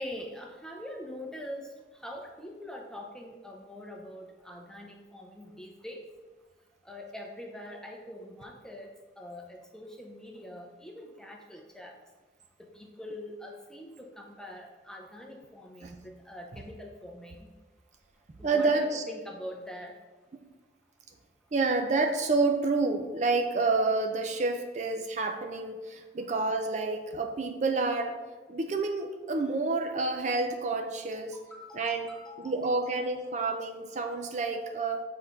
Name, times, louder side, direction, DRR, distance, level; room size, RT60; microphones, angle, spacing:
voice 1, 0.0-6.1 6.8-12.0 12.6-17.5 18.4-19.9 31.1-32.8, left 1 dB, 5° left, 1 dB, 0.7 m, -44 dB
voice 2, 18.4-19.0 21.5-28.1 28.5-31.4 31.7-32.1 32.4-35.0, right 3 dB, 40° right, 5 dB, 0.5 m, -29 dB
7.6 x 3.8 x 4.0 m, 1.3 s
head